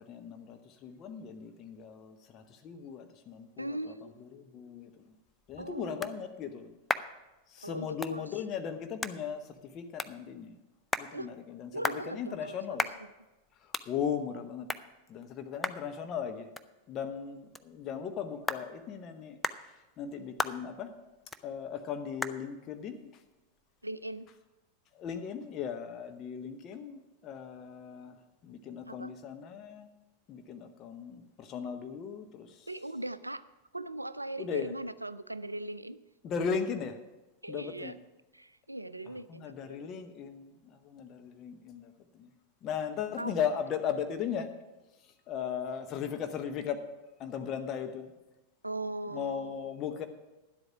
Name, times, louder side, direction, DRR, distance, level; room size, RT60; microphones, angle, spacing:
voice 1, 0.0-5.2 5.5-6.8 7.5-10.6 11.0-12.9 13.5-14.7 15.1-16.5 16.9-20.9 21.4-23.2 24.9-29.9 30.3-32.7 34.4-34.7 36.2-37.0 37.5-38.0 39.1-42.3 42.6-44.5 45.0-46.8 47.2-48.1 49.1-50.1, left 7 dB, 35° left, 7 dB, 0.8 m, -37 dB
voice 2, 3.6-4.3 5.6-6.2 7.6-8.3 11.1-11.3 11.7-12.8 23.8-24.3 28.9-29.1 32.7-33.4 33.7-36.0 37.4-38.0 38.3-40.0 43.2-43.3 48.6-49.7, right 1 dB, 85° right, 16 dB, 0.4 m, -39 dB
sound 1, 5.1-24.4, left 2 dB, 10° left, 0.4 m, -41 dB
10.5 x 8.0 x 5.8 m, 1.1 s
figure-of-eight pair, 90°, 0 cm